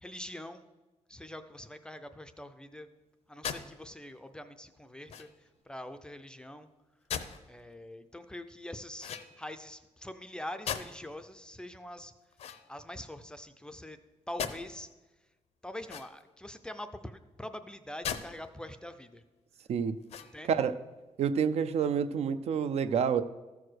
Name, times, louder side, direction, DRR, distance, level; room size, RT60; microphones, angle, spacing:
voice 1, 0.0-0.7 1.1-2.9 3.3-5.3 5.7-6.7 7.5-9.1 9.4-12.1 12.7-14.0 14.3-14.9 15.6-19.2 20.3-20.5, left 1 dB, 5° left, 10 dB, 0.4 m, -44 dB
sound 1, 3.4-3.7 5.1-5.5 7.1-7.4 9.0-9.6 10.6-11.1 12.3-13.2 14.4-14.6 15.8-16.4 18.0-18.3 18.8-18.9 20.0-20.6, left 8 dB, 70° left, 0.7 m, -38 dB
voice 2, 20.4-20.8 21.2-23.2, right 7 dB, 65° right, 12 dB, 0.5 m, -28 dB
14.0 x 4.8 x 6.2 m, 1.1 s
wide cardioid pair, 180°, 11 cm